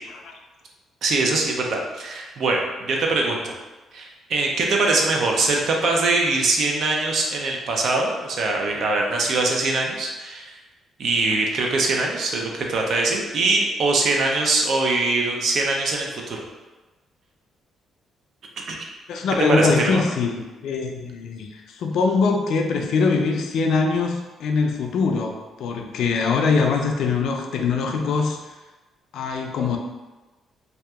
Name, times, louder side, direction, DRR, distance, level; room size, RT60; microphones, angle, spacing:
voice 1, 1.0-3.5 3.9-10.6 11.0-16.4 18.7-18.8 19.5-20.0, right 3 dB, 65° right, 0 dB, 0.4 m, -22 dB
voice 2, 19.1-28.4 29.1-29.8, left 4 dB, 75° left, 3 dB, 0.3 m, -23 dB
2.7 x 2.2 x 2.3 m, 1.2 s
cardioid pair, 90°, 0 cm